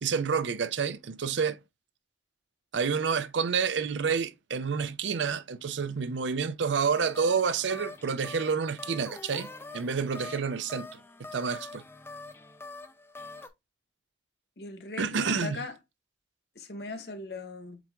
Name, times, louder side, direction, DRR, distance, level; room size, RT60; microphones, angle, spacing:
voice 1, 0.0-1.6 2.7-11.0 11.3-11.8 15.0-15.6, right 6 dB, 85° right, 0.5 m, -29 dB
sound 1, 6.9-13.5, left 3 dB, 15° left, 0.4 m, -44 dB
voice 2, 14.6-15.7 16.6-17.8, left 3 dB, 60° left, 1.1 m, -39 dB
7.7 x 3.0 x 2.3 m
head